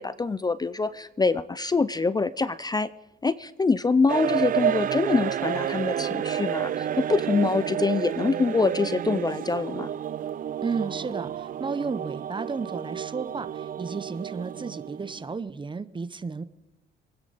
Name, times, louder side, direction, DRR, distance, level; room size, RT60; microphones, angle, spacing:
voice 1, 0.0-2.9 3.2-9.9, left 4 dB, 20° left, 16 dB, 0.4 m, -25 dB
sound 1, 4.1-15.3, right 10 dB, 45° right, 0.4 m, -30 dB
voice 2, 10.6-16.4, right 4 dB, 25° right, 15 dB, 0.7 m, -33 dB
26.5 x 9.9 x 4.0 m, 1.0 s
cardioid pair, 90°, 20 cm